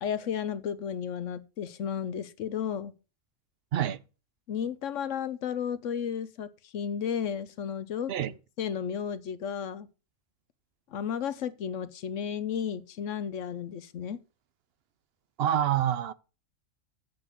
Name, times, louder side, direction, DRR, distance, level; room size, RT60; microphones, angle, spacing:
voice 1, 0.0-2.9 4.5-8.1 8.6-9.9 10.9-14.2, left 8 dB, 70° left, 1.1 m, -33 dB
voice 2, 15.4-16.1, right 10 dB, 60° right, 0.7 m, -26 dB
7.9 x 6.0 x 6.2 m
omnidirectional pair, 1.4 m